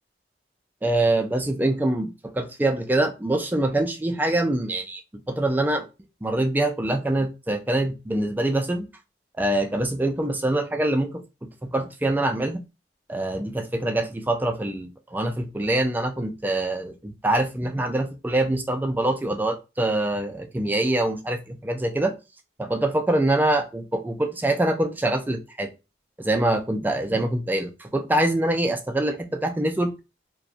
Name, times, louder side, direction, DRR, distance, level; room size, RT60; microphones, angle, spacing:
voice 1, 0.8-5.0 5.3-5.9 6.2-8.9 9.4-11.2 11.6-12.6 13.1-22.1 22.6-25.7 26.2-29.9, right 1 dB, 10° right, 6 dB, 0.3 m, -24 dB
2.4 x 2.2 x 2.7 m, 0.28 s
head